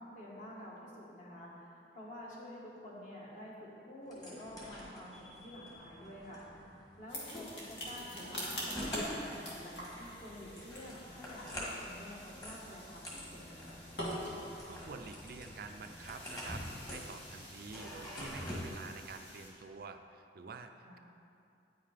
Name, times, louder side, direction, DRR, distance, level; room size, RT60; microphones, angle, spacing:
voice 1, 0.0-13.8 20.8-21.0, left 1 dB, 45° left, -5 dB, 1.7 m, -49 dB
sound 1, 4.1-18.7, left 1 dB, 20° left, 1.7 m, -46 dB
sound 2, 7.1-19.5, equal, 80° left, 1.9 m, -46 dB
voice 2, 14.7-21.0, right 4 dB, 55° right, 7 dB, 0.4 m, -48 dB
9.2 x 5.6 x 5.0 m, 2.6 s
head